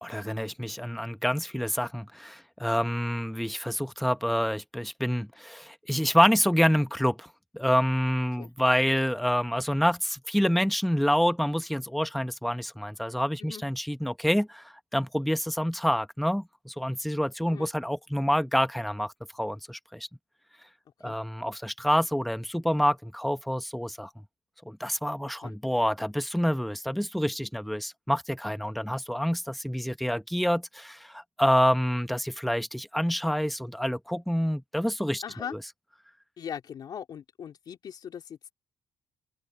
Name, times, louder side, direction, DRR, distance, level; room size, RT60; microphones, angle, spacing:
voice 1, 0.0-7.3 7.5-20.1 21.0-24.1 24.7-35.2, equal, ahead, 1.1 m, -27 dB
voice 2, 35.2-35.5 36.4-38.5, left 8 dB, 60° left, 3.3 m, -40 dB
cardioid pair, 90°, 8 cm